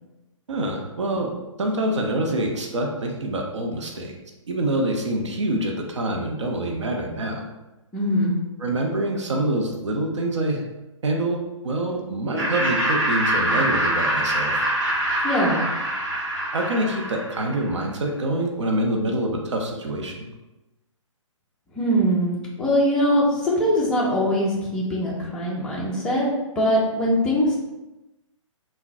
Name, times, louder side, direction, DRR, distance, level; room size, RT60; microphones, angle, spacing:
voice 1, 0.5-1.3 1.6-4.1 4.5-7.4 8.6-10.6 11.0-14.6 16.5-20.3, right 1 dB, 60° right, 1 dB, 0.6 m, -26 dB
voice 2, 7.9-8.4 15.2-15.6 21.7-26.3 26.6-27.6, equal, 5° left, -6 dB, 0.4 m, -22 dB
Laughter, 12.4-17.7, right 1 dB, 40° right, 1.3 m, -24 dB
3.6 x 2.1 x 2.6 m, 1.0 s
figure-of-eight pair, 130°, 17 cm